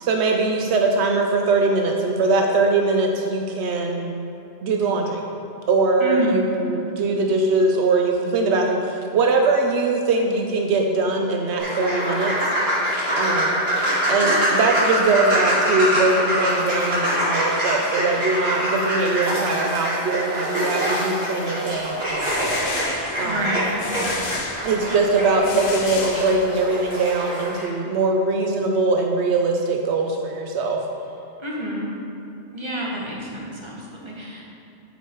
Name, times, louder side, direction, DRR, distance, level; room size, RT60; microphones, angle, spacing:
voice 1, 0.0-4.1 4.6-5.3 5.7-12.5 13.1-13.6 14.1-22.6 23.2-23.4 24.6-30.8, right 3 dB, 80° right, 2 dB, 0.9 m, -21 dB
voice 2, 6.0-6.6 23.2-23.8 31.4-32.0 32.5-34.4, equal, 25° right, -4 dB, 1.1 m, -28 dB
sound 1, 11.6-27.6, equal, 65° right, 2.0 m, -24 dB
sound 2, 21.9-26.8, left 3 dB, 60° left, 0.9 m, -32 dB
8.2 x 4.7 x 4.4 m, 2.8 s
omnidirectional pair, 1.1 m